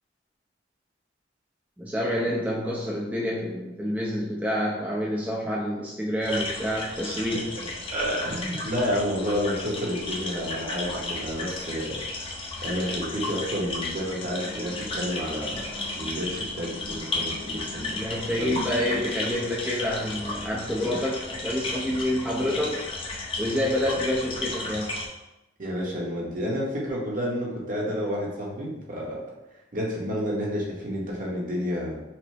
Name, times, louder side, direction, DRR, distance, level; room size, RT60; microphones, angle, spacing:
voice 1, 1.8-7.5 17.9-22.8 23.4-24.9, left 1 dB, 10° right, -5 dB, 0.6 m, -28 dB
sound 1, 6.2-25.1, left 2 dB, 30° left, 0.6 m, -34 dB
voice 2, 7.5-12.0 12.6-18.0 18.3-18.5 25.6-29.2 29.7-32.0, equal, 50° right, -4 dB, 1.1 m, -30 dB
5.9 x 2.1 x 3.4 m, 0.99 s
head